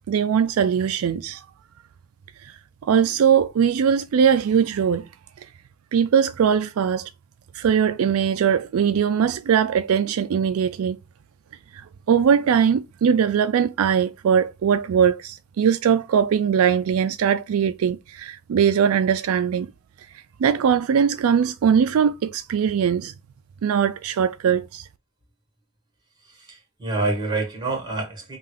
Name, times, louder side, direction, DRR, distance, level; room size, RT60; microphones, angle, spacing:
voice 1, 0.1-1.4 2.4-2.6 2.8-5.1 5.9-7.1 7.5-11.0 11.7-19.7 20.4-23.1 23.6-24.9, right 7 dB, 70° right, 0.3 m, -21 dB
voice 2, 26.3-28.4, right 2 dB, 20° right, 1.7 m, -27 dB
5.5 x 2.4 x 3.2 m
head